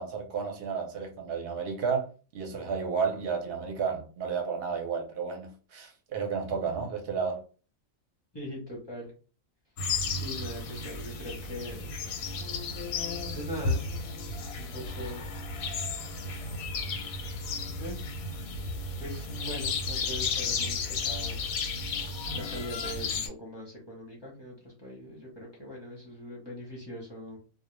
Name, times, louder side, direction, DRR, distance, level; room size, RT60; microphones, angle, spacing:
voice 1, 0.0-7.4, right 6 dB, 55° right, 0.7 m, -32 dB
voice 2, 8.3-9.1 10.1-11.9 13.3-13.8 14.6-15.2 17.8-18.0 19.0-21.4 22.3-27.4, equal, 25° left, 0.6 m, -41 dB
sound 1, 9.8-23.3, left 4 dB, 90° left, 1.0 m, -33 dB
2.3 x 2.0 x 3.0 m
omnidirectional pair, 1.4 m